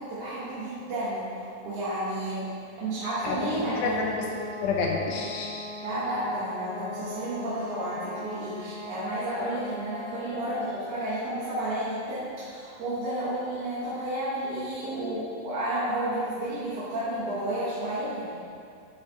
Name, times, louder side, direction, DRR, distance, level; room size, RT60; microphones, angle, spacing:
voice 1, 0.0-2.5 2.8-4.1 5.8-18.3, right 1 dB, 65° right, -12 dB, 2.6 m, -31 dB
sound 1, 3.1-10.8, left 1 dB, 55° left, 0.9 m, -40 dB
voice 2, 3.8-5.7, left 4 dB, 85° left, 0 dB, 2.5 m, -29 dB
9.7 x 4.9 x 2.8 m, 2.3 s
omnidirectional pair, 4.1 m